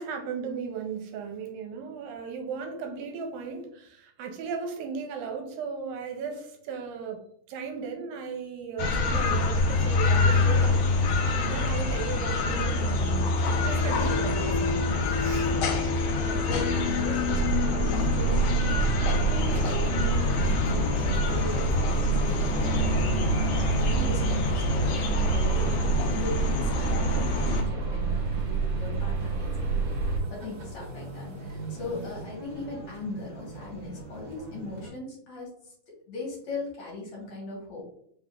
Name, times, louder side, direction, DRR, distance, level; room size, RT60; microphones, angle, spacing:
voice 1, 0.0-10.9 11.4-13.3 13.6-14.8 15.2-15.5, right 5 dB, 85° right, 2.3 m, -36 dB
sound 1, 8.8-27.6, left 3 dB, 85° left, 1.5 m, -26 dB
voice 2, 14.8-22.8 23.5-25.7 26.1-35.7 36.1-37.9, left 3 dB, 60° left, 2.4 m, -39 dB
sound 2, 17.3-30.2, right 4 dB, 65° right, 1.7 m, -28 dB
sound 3, 19.4-34.9, right 2 dB, 50° right, 1.9 m, -40 dB
5.3 x 3.7 x 2.4 m
omnidirectional pair, 4.2 m